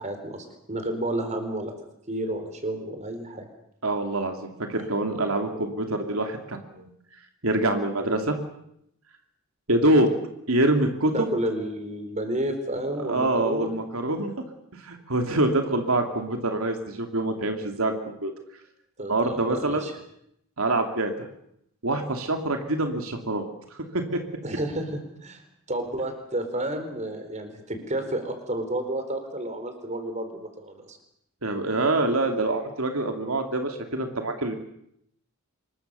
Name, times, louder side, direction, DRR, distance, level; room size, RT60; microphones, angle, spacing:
voice 1, 0.0-1.7 2.1-3.5 4.8-4.9 11.1-13.7 19.0-19.9 24.4-25.4 25.7-31.0, right 1 dB, 35° right, 6 dB, 4.4 m, -31 dB
voice 2, 3.8-6.9 7.4-8.4 9.7-10.1 10.5-11.3 13.0-14.3 14.8-18.3 19.1-19.8 20.6-21.3 21.8-23.5 23.9-24.2 31.4-34.6, right 2 dB, 85° right, 5 dB, 2.7 m, -25 dB
26.0 x 22.0 x 7.0 m, 0.76 s
head